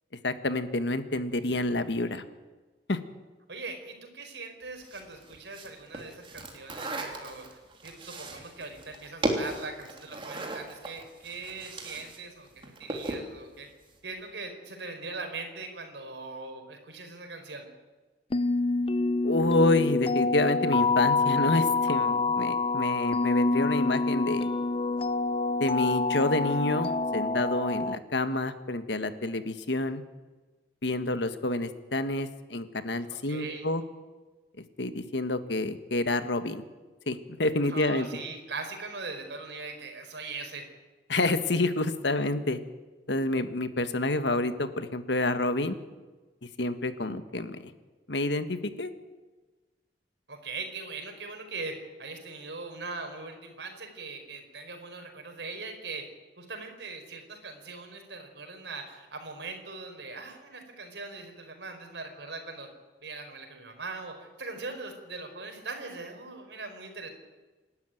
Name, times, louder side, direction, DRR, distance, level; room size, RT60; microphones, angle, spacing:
voice 1, 0.2-2.2 2.9-3.0 19.2-24.5 25.6-30.0 30.8-33.8 34.8-36.6 37.1-38.1 41.1-42.6 43.1-45.7 46.6-47.7 48.1-48.9, left 2 dB, 75° left, 10 dB, 1.6 m, -28 dB
voice 2, 3.5-13.7 14.0-17.7 33.1-33.7 37.7-40.7 50.3-56.1 56.4-62.7 63.0-67.1, right 3 dB, 75° right, 5 dB, 4.8 m, -41 dB
sound 1, 4.8-12.2 12.5-13.3, right 1 dB, 30° right, 3.2 m, -36 dB
sound 2, 18.3-28.0, left 3 dB, 30° left, 0.6 m, -27 dB
27.5 x 12.5 x 9.3 m, 1.2 s
head